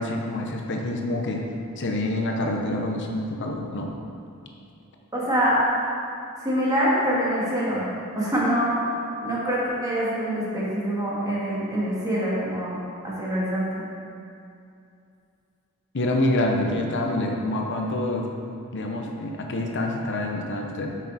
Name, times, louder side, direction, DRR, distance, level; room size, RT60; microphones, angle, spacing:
voice 1, 0.0-1.4 1.8-3.9 15.9-18.3 18.7-20.9, left 1 dB, 55° left, 2 dB, 0.8 m, -26 dB
voice 2, 5.1-5.6 6.4-7.8 8.2-8.8 9.2-12.7 13.0-13.9, equal, 15° right, -7 dB, 2.0 m, -25 dB
8.4 x 6.3 x 4.1 m, 2.5 s
head